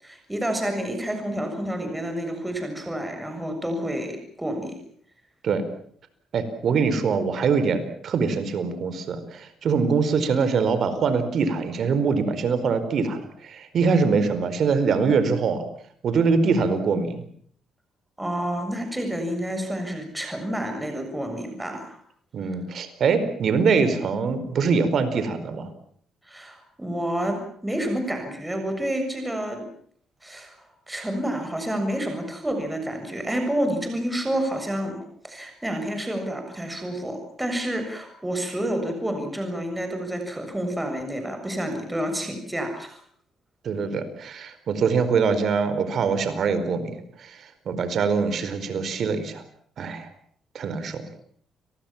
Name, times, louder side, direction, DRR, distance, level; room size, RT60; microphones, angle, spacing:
voice 1, 0.0-4.8 18.2-22.0 26.3-29.6 30.2-35.0 35.2-43.0, right 1 dB, 10° right, 5 dB, 7.1 m, -29 dB
voice 2, 6.3-15.6 16.0-17.2 22.3-25.7 43.6-46.9 47.2-49.4 49.8-50.1 50.5-51.0, right 5 dB, 60° right, 11 dB, 4.6 m, -23 dB
30.0 x 20.0 x 7.4 m, 0.62 s
cardioid pair, 90°, 0 cm